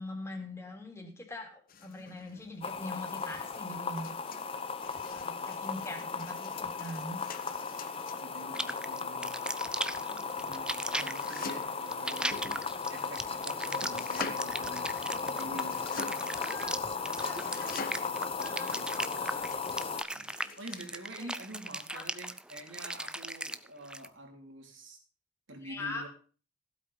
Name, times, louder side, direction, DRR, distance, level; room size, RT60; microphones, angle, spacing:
voice 1, 0.0-4.2 5.1-7.2 10.0-10.4 16.2-17.8 18.4-18.9 19.2-19.5 21.2-21.3 21.9-22.1 25.6-26.1, left 2 dB, 15° left, 0 dB, 3.1 m, -43 dB
sound 1, 1.7-8.7 10.8-11.8 12.3-13.2 13.8-14.5 15.4-16.3 17.1-18.2 19.3-21.0, left 4 dB, 45° left, 1.2 m, -46 dB
sound 2, 2.6-20.0, left 5 dB, 30° left, 0.9 m, -36 dB
voice 2, 8.2-9.3 10.4-14.9 15.2-16.2 16.7-17.4 17.9-18.2 18.7-19.4 20.1-20.3 20.6-25.0 25.5-26.1, right 1 dB, 85° right, 2 dB, 4.0 m, -47 dB
sound 3, 8.5-24.1, right 1 dB, 5° right, 0.5 m, -38 dB
15.5 x 8.3 x 5.5 m, 0.38 s
head